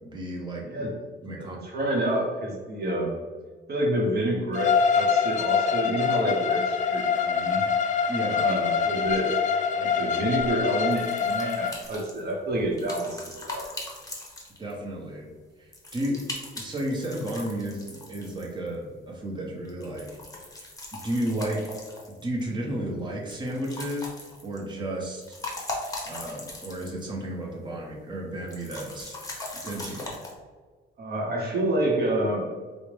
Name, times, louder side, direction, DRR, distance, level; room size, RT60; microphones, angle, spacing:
voice 1, 0.0-0.6 1.2-1.6 8.1-8.4 14.6-15.3 15.6-16.3 16.5-20.1 20.4-20.5 20.9-21.6 22.2-25.4 26.0-29.1 29.6-30.2, right 1 dB, 20° right, -2 dB, 0.9 m, -33 dB
voice 2, 0.6-0.9 1.4-3.2 3.7-7.6 8.3-9.3 9.7-13.7 31.0-32.5, right 1 dB, 55° right, -1 dB, 0.8 m, -28 dB
Bowed string instrument, 4.5-11.7, left 6 dB, 40° left, 0.4 m, -25 dB
sound 1, 10.9-14.9 15.7-18.7 19.6-22.4 23.3-24.7 25.1-27.1 27.4-27.5 28.5-30.3, left 2 dB, 15° left, 1.0 m, -40 dB
4.7 x 2.1 x 3.1 m, 1.4 s
cardioid pair, 90°, 20 cm